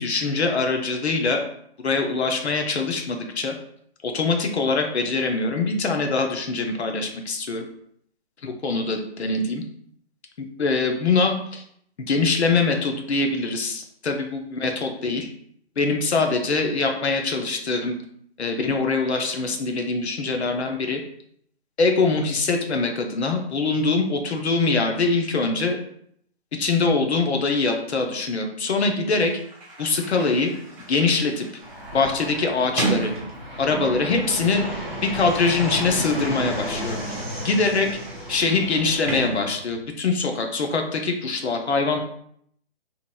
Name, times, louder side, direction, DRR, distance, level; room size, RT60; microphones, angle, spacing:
voice 1, 0.0-1.4 1.8-3.6 4.0-7.6 8.4-9.6 10.6-11.6 12.1-15.3 15.8-18.0 18.4-21.0 21.8-25.8 26.6-29.3 29.8-30.5 30.9-31.5 31.9-33.1 33.6-34.6 35.0-37.2 37.4-37.9 38.3-42.0, left 3 dB, 75° left, 4 dB, 0.7 m, -23 dB
Sliding door, 28.8-28.9 29.1-34.1 35.1-40.0, right 3 dB, 30° right, 1.0 m, -35 dB
Fixed-wing aircraft airplane, 31.6-39.2, equal, 5° right, 0.6 m, -33 dB
2.8 x 2.6 x 2.2 m, 0.68 s
figure-of-eight pair, 150°, 33 cm